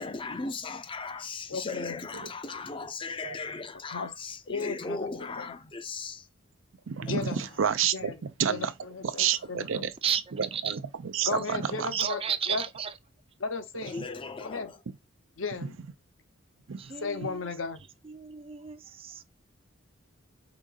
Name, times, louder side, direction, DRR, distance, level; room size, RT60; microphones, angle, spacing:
voice 1, 0.0-6.3 7.1-7.5 9.1-9.3 13.8-14.8, left 4 dB, 25° left, 0.5 m, -37 dB
voice 2, 1.5-1.9 3.9-4.1 4.5-5.1 5.4-5.5 7.0-7.3 7.9-8.1 8.5-9.8 11.2-12.2 12.5-12.6 13.4-14.0 14.4-14.7 15.4-15.8 17.0-17.8, left 4 dB, 80° left, 0.8 m, -35 dB
voice 3, 6.9-8.7 9.0-9.9 10.3-11.9 14.0-14.1 15.6-15.7 16.7-16.9 17.2-17.3, right 8 dB, 80° right, 0.5 m, -30 dB
voice 4, 11.3-12.9 16.8-17.5 18.0-19.2, right 8 dB, 30° right, 0.4 m, -33 dB
5.1 x 3.6 x 2.3 m
head